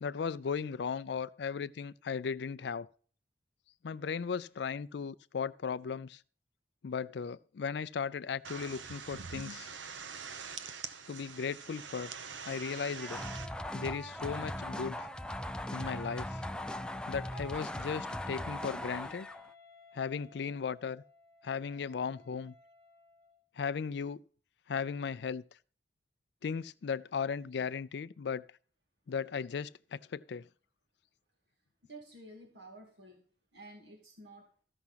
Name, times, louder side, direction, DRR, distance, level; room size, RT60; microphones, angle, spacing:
voice 1, 0.0-2.9 3.8-6.2 6.8-9.7 11.1-12.1 12.5-13.2 13.7-15.1 15.7-16.4 17.1-19.3 19.9-21.0 21.4-22.5 23.6-24.2 24.7-25.4 26.4-28.4 29.1-30.5, left 6 dB, 70° left, 0.4 m, -36 dB
sound 1, 8.4-13.5, right 5 dB, 90° right, 1.0 m, -44 dB
sound 2, 13.0-19.5, left 1 dB, 5° left, 0.4 m, -39 dB
Wind instrument woodwind instrument, 18.5-23.5, left 4 dB, 35° right, 6.2 m, -60 dB
voice 2, 31.8-33.2 33.5-34.5, right 2 dB, 70° right, 2.5 m, -51 dB
14.5 x 6.0 x 5.7 m
head